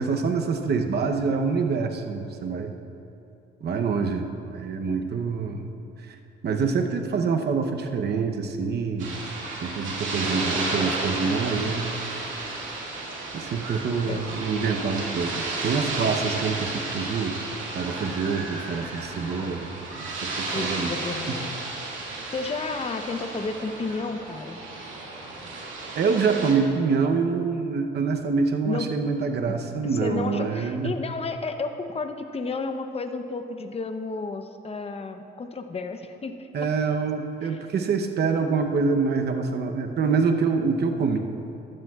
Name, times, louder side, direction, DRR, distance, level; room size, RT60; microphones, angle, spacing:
voice 1, 0.0-2.8 3.6-4.3 4.5-5.7 6.0-6.2 6.4-9.2 9.6-12.0 13.3-17.4 17.7-20.9 26.0-30.9 36.5-41.2, right 5 dB, 55° right, 4 dB, 0.9 m, -26 dB
sound 1, 9.0-26.5, right 2 dB, 75° right, 2.2 m, -33 dB
voice 2, 20.5-21.6 21.8-22.0 22.3-24.6 28.6-28.9 29.5-29.6 29.8-36.5 37.4-37.6, left 3 dB, 30° left, 7 dB, 0.8 m, -32 dB
14.0 x 12.0 x 2.4 m, 2.8 s
cardioid pair, 90°, 20 cm